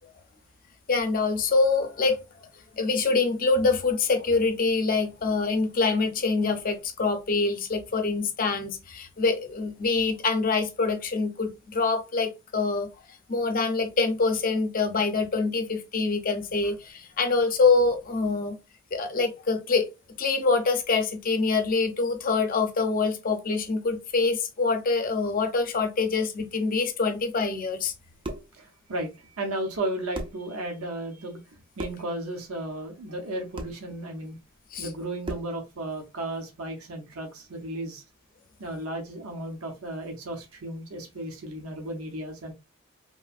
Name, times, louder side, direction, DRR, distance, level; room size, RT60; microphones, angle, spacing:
voice 1, 0.9-2.2 2.8-12.9 13.3-18.6 18.9-19.9 20.2-27.9 34.7-34.9, left 4 dB, 40° left, 0.6 m, -25 dB
sound 1, 28.2-28.6 29.7-29.8 30.1-30.5 31.7-32.1 33.5-33.8 35.2-35.6, right 1 dB, 25° right, 0.4 m, -36 dB
voice 2, 28.5-31.4 31.8-34.4 34.8-38.0 38.6-42.5, right 1 dB, 85° right, 0.7 m, -34 dB
3.1 x 2.5 x 2.4 m
head